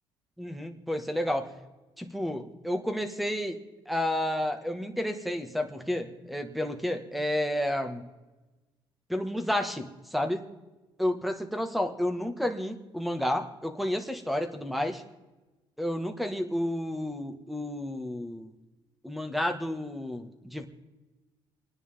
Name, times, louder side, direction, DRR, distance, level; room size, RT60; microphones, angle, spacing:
voice 1, 0.4-1.5 2.0-3.6 3.8-8.1 9.1-10.4 11.0-15.0 15.8-18.5 19.0-20.7, left 1 dB, ahead, 7 dB, 1.8 m, -31 dB
29.0 x 10.0 x 3.7 m, 1.1 s
cardioid pair, 110°, 10 cm